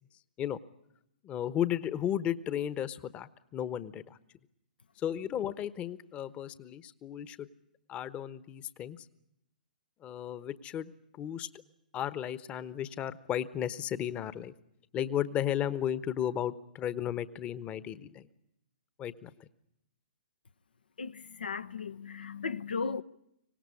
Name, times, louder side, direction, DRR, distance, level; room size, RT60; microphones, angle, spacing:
voice 1, 1.2-4.2 5.0-7.5 7.9-9.0 10.0-10.9 11.2-11.5 11.9-14.5 14.9-18.3 19.0-19.3, left 10 dB, 25° left, 1.1 m, -34 dB
voice 2, 21.0-23.0, left 5 dB, 75° left, 0.9 m, -36 dB
25.5 x 18.0 x 9.7 m
figure-of-eight pair, 120°, 5 cm